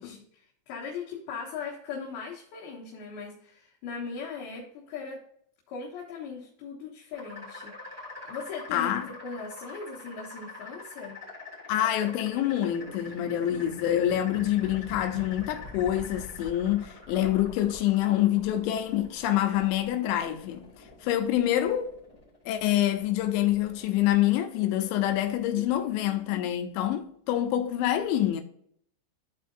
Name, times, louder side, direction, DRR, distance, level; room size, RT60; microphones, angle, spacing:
voice 1, 0.0-5.2 5.7-8.9 9.2-11.2 25.8-26.5, left 5 dB, 70° left, 2.9 m, -39 dB
sound 1, 7.1-25.9, left 2 dB, 5° right, 1.2 m, -45 dB
voice 2, 8.7-9.1 11.7-21.9 22.5-28.4, left 12 dB, 85° left, 2.9 m, -26 dB
12.0 x 4.3 x 2.5 m
omnidirectional pair, 5.1 m